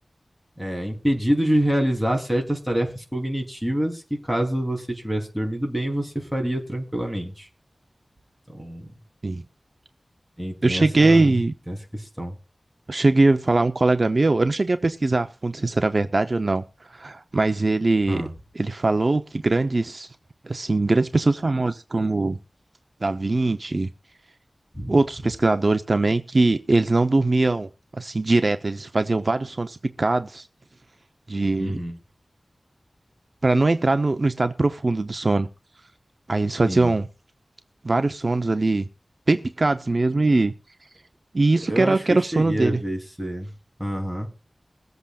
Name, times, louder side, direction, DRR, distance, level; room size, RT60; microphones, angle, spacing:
voice 1, 0.6-7.5 8.5-8.9 10.4-11.3 11.7-12.3 18.1-18.3 24.7-25.0 31.6-32.0 36.7-36.9 41.7-43.5 43.8-44.3, equal, 5° right, 2 dB, 3.5 m, -26 dB
voice 2, 10.6-11.5 12.9-16.6 16.9-18.2 18.5-20.1 20.4-22.4 23.0-23.9 24.9-30.5 31.3-31.8 33.4-35.5 36.3-37.1 37.8-38.9 39.3-40.5 41.3-42.8, right 2 dB, 50° right, 8 dB, 0.8 m, -21 dB
22.5 x 8.1 x 2.5 m, 0.30 s
wide cardioid pair, 70°, 0 cm